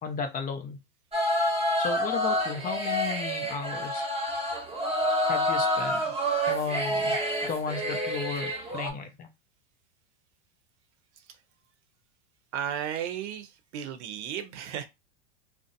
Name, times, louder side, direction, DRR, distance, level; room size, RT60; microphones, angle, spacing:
voice 1, 0.0-0.8 1.8-4.1 5.3-6.2 6.5-9.3, left 5 dB, 25° left, 0.5 m, -34 dB
sound 1, 1.1-8.9, equal, 15° right, 0.9 m, -28 dB
voice 2, 12.5-14.9, right 9 dB, 75° right, 0.7 m, -34 dB
2.6 x 2.0 x 2.6 m
hypercardioid pair, 115°, 34 cm